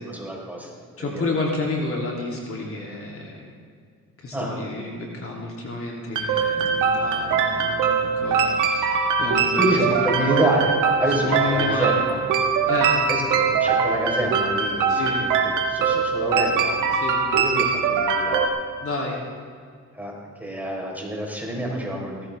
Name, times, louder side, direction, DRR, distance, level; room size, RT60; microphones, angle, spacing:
voice 1, 0.0-1.2 4.3-4.5 9.6-12.2 13.1-15.3 15.7-16.8 17.3-18.5 19.9-22.3, right 1 dB, 5° right, -2 dB, 4.3 m, -27 dB
voice 2, 1.0-3.5 4.2-10.0 11.1-12.0 12.7-12.9 14.9-15.2 16.9-17.2 18.8-19.2, left 2 dB, 45° left, -2 dB, 3.1 m, -30 dB
sound 1, 6.2-18.5, right 5 dB, 85° right, 1.6 m, -22 dB
18.5 x 14.5 x 3.5 m, 2.1 s
cardioid pair, 90°, 30 cm